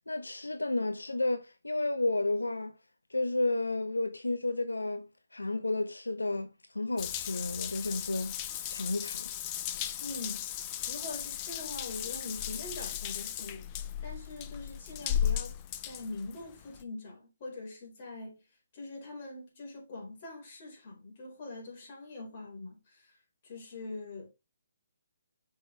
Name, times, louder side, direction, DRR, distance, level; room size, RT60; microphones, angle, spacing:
voice 1, 0.1-2.7 3.1-8.4 8.7-9.3, left 2 dB, 90° left, 0.7 m, -32 dB
Water tap faucet / Bathtub (filling or washing) / Drip, 7.0-16.8, left 10 dB, 30° left, 0.6 m, -36 dB
voice 2, 10.0-10.5 10.9-13.7 14.0-15.5 15.8-18.4 18.7-24.3, left 2 dB, 45° left, 4.1 m, -43 dB
7.1 x 5.6 x 3.2 m
figure-of-eight pair, 140°, 0 cm